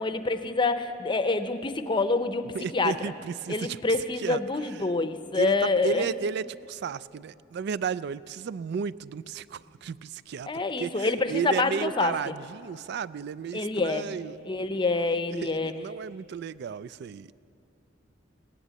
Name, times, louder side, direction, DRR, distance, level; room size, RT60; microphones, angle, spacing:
voice 1, 0.0-2.4 2.7-2.9 3.5-6.1 10.5-12.3 13.5-14.1 14.5-15.7, left 3 dB, 25° left, 10 dB, 0.6 m, -27 dB
voice 2, 2.5-3.8 4.2-4.4 4.8-4.9 5.4-10.5 10.8-14.9 15.4-17.3, right 6 dB, 60° right, 18 dB, 0.3 m, -33 dB
16.5 x 11.0 x 7.6 m, 2.5 s
head